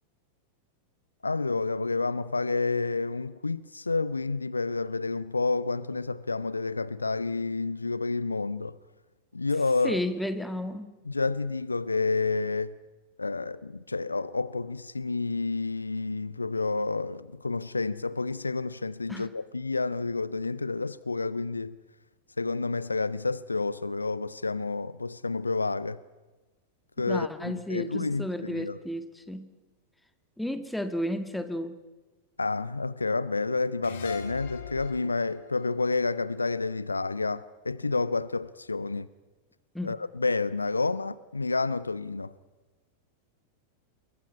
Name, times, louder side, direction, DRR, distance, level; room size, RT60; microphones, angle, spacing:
voice 1, 1.2-8.8 9.3-10.0 11.1-12.7 13.2-21.8 22.4-26.0 27.0-28.8 32.4-39.1 39.8-42.3, left 3 dB, 80° left, 0.7 m, -29 dB
voice 2, 9.8-10.9 19.1-19.3 27.1-29.5 30.4-31.8 39.7-39.9, left 1 dB, 5° left, 1.9 m, -32 dB
sound 1, 33.8-37.1, left 8 dB, 60° left, 2.9 m, -43 dB
28.0 x 22.5 x 5.5 m
figure-of-eight pair, 90°, 0 cm